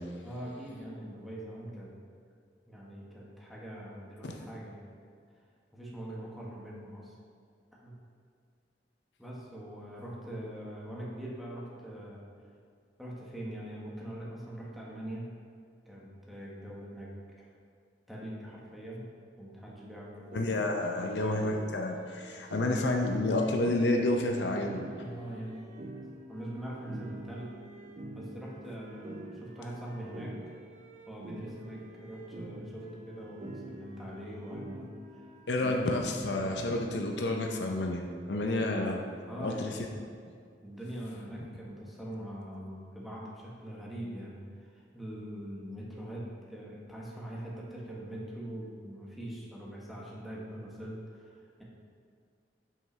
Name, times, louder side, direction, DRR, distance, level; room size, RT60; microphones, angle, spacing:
voice 1, 0.2-1.9 2.7-4.9 5.7-7.1 7.8-8.0 9.2-12.2 13.0-15.3 15.8-17.1 17.4-17.5 18.1-19.0 19.4-20.4 21.0-21.4 25.0-26.0 26.3-27.5 28.1-30.5 31.1-34.9 35.1-35.2 35.7-35.8 39.3-39.9 40.6-51.6, right 1 dB, ahead, -6 dB, 1.3 m, -42 dB
voice 2, 20.3-24.9 35.5-39.0 39.4-39.7, left 2 dB, 70° left, 2 dB, 0.7 m, -30 dB
sound 1, 20.3-37.8, right 1 dB, 40° right, 0.6 m, -46 dB
7.5 x 5.7 x 3.3 m, 2.2 s
head